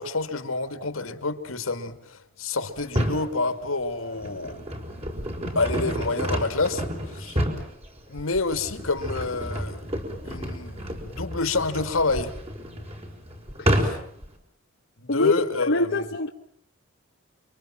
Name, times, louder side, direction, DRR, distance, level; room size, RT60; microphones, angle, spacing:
voice 1, 0.0-4.6 5.5-7.4 8.1-9.9 10.2-12.3 13.8-14.0 15.0-16.1, left 3 dB, 80° left, 2.3 m, -28 dB
sound 1, 2.8-3.3 3.9-14.3, equal, 30° right, 5.4 m, -30 dB
voice 2, 15.6-16.3, left 3 dB, 60° left, 1.2 m, -22 dB
29.5 x 24.0 x 7.5 m
head